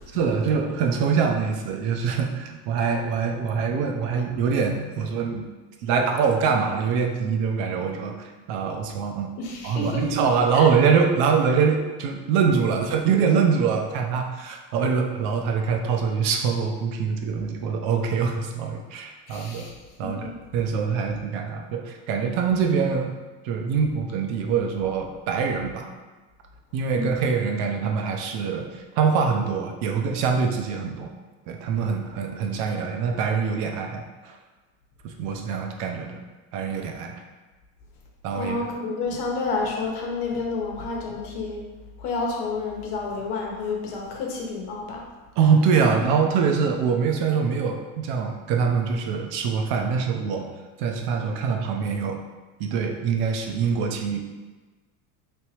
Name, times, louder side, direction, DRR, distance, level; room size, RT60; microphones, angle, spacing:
voice 1, 0.1-5.4 5.8-8.1 8.5-9.3 9.6-19.7 20.0-23.1 23.4-25.9 26.7-28.7 28.9-31.1 31.5-34.4 35.0-36.2 36.5-37.2 38.2-38.6 45.4-50.5 50.8-52.2 52.6-54.2, right 6 dB, 65° right, 3 dB, 0.7 m, -24 dB
voice 2, 9.4-10.1 10.5-10.7 19.3-19.7 20.0-20.3 26.9-27.2 38.3-41.6 42.0-45.0, left 3 dB, 70° left, 0 dB, 1.0 m, -30 dB
3.2 x 3.0 x 3.0 m, 1.3 s
supercardioid pair, 95°, 45 cm